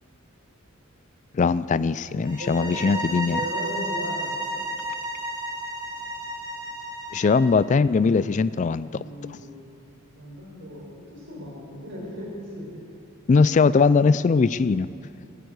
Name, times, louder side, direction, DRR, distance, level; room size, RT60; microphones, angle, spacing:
voice 1, 1.3-3.4 7.1-9.0 13.3-14.9, left 4 dB, 35° left, 17 dB, 0.3 m, -20 dB
sound 1, 2.2-7.4, right 1 dB, 20° right, 3.7 m, -32 dB
voice 2, 2.4-4.4 8.9-9.7 10.2-12.8, equal, 60° right, -3 dB, 4.6 m, -37 dB
16.0 x 10.0 x 8.0 m, 2.6 s
head